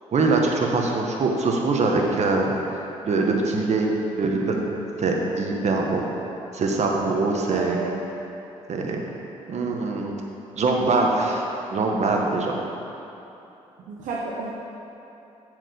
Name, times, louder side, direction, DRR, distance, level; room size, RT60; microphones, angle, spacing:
voice 1, 0.1-2.5 3.0-3.9 4.2-4.7 5.0-6.0 6.5-7.8 8.7-9.0 9.5-10.1 10.6-12.6, right 3 dB, 55° right, 1 dB, 1.2 m, -23 dB
voice 2, 7.5-8.0 13.9-14.5, right 4 dB, 75° right, -4 dB, 0.9 m, -31 dB
7.5 x 5.0 x 6.8 m, 2.9 s
supercardioid pair, 60°, 14 cm